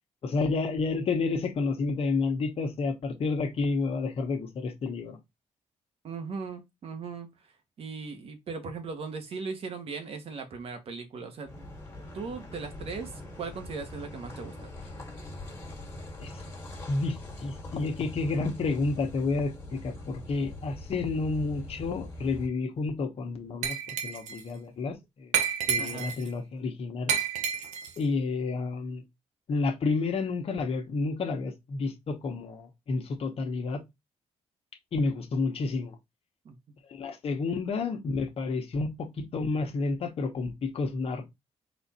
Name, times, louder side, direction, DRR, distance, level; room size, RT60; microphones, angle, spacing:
voice 1, 0.2-5.2 16.2-16.3 16.9-23.8 24.0-25.3 25.7-27.1 28.0-29.0 29.5-33.8 34.9-36.0 36.9-41.2, left 3 dB, 55° left, 1.1 m, -30 dB
voice 2, 6.0-7.5 7.8-11.7 12.1-14.7 25.8-26.2 36.4-36.8, right 4 dB, 55° right, 1.2 m, -38 dB
Car passing by / Idling / Accelerating revving vroom, 11.4-22.5, left 1 dB, 20° left, 1.8 m, -43 dB
Glass, 23.6-24.4 25.3-26.3 27.1-28.0, right 8 dB, 90° right, 0.8 m, -29 dB
4.2 x 2.5 x 4.2 m
cardioid pair, 100°, 12 cm